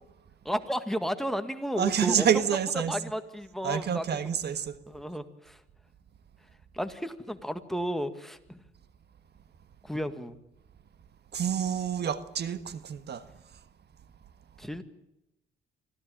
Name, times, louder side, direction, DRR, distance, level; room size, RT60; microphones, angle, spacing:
voice 1, 0.5-2.3 2.9-4.4 4.9-5.6 6.7-8.6 9.8-10.4 14.6-14.8, equal, ahead, 2.0 m, -33 dB
voice 2, 1.8-2.9 3.6-4.8 11.3-13.3, right 8 dB, 55° right, 1.5 m, -28 dB
25.0 x 16.0 x 9.1 m
cardioid pair, 90°, 20 cm